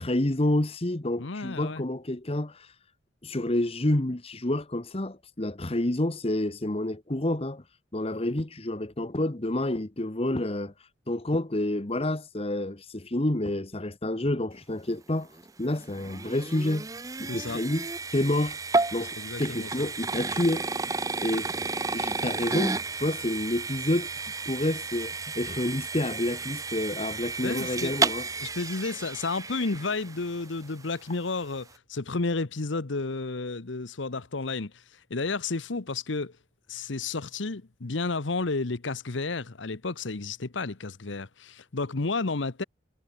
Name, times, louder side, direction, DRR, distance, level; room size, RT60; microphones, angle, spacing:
voice 1, 0.0-2.7 3.2-7.6 7.9-10.7 11.1-15.3 15.6-16.9 17.2-18.6 18.9-20.7 21.2-21.5 21.9-24.1 24.4-28.3, left 1 dB, 30° left, 1.2 m, -29 dB
voice 2, 1.2-1.8 17.3-17.6 19.2-19.9 27.4-27.9 28.4-36.3 36.7-42.6, left 3 dB, 70° left, 1.0 m, -32 dB
sound 1, 15.3-30.5, right 3 dB, 15° right, 0.6 m, -32 dB
head